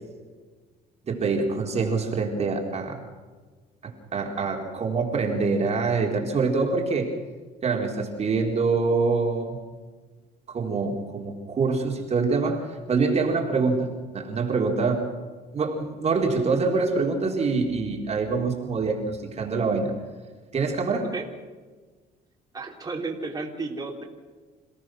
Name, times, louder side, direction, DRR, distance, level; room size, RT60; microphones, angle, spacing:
voice 1, 1.1-3.0 3.8-7.1 7.6-9.6 10.5-15.1 15.5-19.9 20.5-21.1, right 4 dB, 40° right, 1 dB, 3.8 m, -25 dB
voice 2, 22.5-24.0, right 3 dB, 20° right, -2 dB, 3.7 m, -32 dB
28.0 x 17.5 x 6.2 m, 1.4 s
cardioid pair, 110°, 17 cm